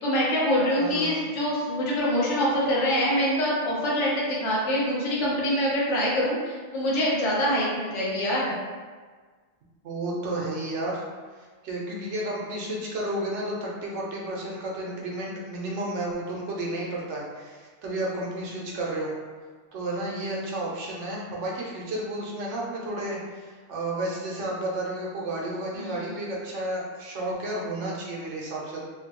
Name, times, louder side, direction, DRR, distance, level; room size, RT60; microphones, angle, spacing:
voice 1, 0.0-8.5 25.7-26.1, equal, 75° left, -6 dB, 1.1 m, -25 dB
voice 2, 0.8-1.3 9.8-11.1 11.6-19.1 19.7-28.8, right 1 dB, 80° right, -3 dB, 1.0 m, -32 dB
3.1 x 2.1 x 2.8 m, 1.5 s
omnidirectional pair, 1.2 m